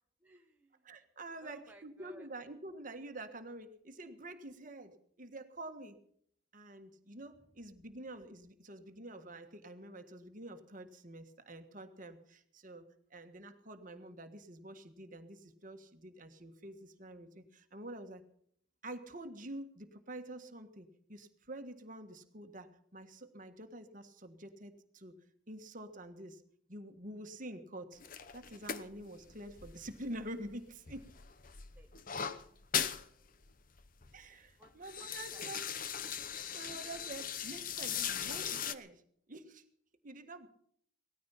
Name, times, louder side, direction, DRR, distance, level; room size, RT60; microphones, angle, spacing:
voice 1, 0.2-0.7 1.4-2.3 31.8-32.4 34.6-34.7 35.0-35.5, right 1 dB, 10° right, 2 dB, 0.9 m, -58 dB
voice 2, 0.8-6.0 6.5-18.2 18.8-26.4 26.7-28.0 28.3-31.1 34.1-35.7 36.3-39.0 39.3-39.6 40.0-40.5, right 1 dB, 40° right, 7 dB, 1.6 m, -48 dB
sound 1, 28.0-30.5 30.9-33.0 33.4-33.5 33.8-34.2 34.6-38.7, left 8 dB, 40° left, 0.8 m, -39 dB
18.0 x 14.0 x 5.7 m, 0.64 s
head